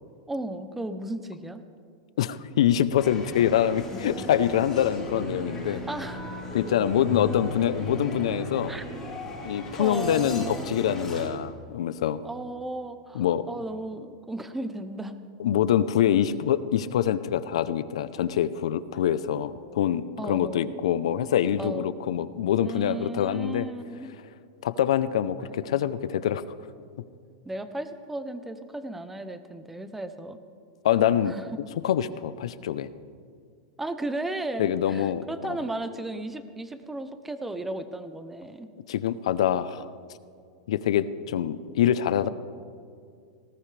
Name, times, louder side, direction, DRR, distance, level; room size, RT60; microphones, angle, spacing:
voice 1, 0.3-1.6 5.6-6.3 8.7-8.8 9.8-10.7 12.2-15.2 20.2-20.7 21.6-22.0 22.6-24.1 25.4-25.9 27.4-30.4 31.3-31.5 33.8-38.7, right 1 dB, 5° right, 10 dB, 0.7 m, -35 dB
voice 2, 2.2-5.8 6.5-8.7 9.4-12.2 13.1-13.5 15.4-23.7 24.6-26.4 30.8-31.3 31.8-32.9 34.6-35.6 38.9-39.9 40.7-42.3, left 10 dB, 80° left, 14 dB, 0.7 m, -25 dB
sound 1, 3.0-11.3, left 1 dB, 10° left, 3.7 m, -36 dB
19.0 x 17.5 x 3.4 m, 2.3 s
supercardioid pair, 160°, 3 cm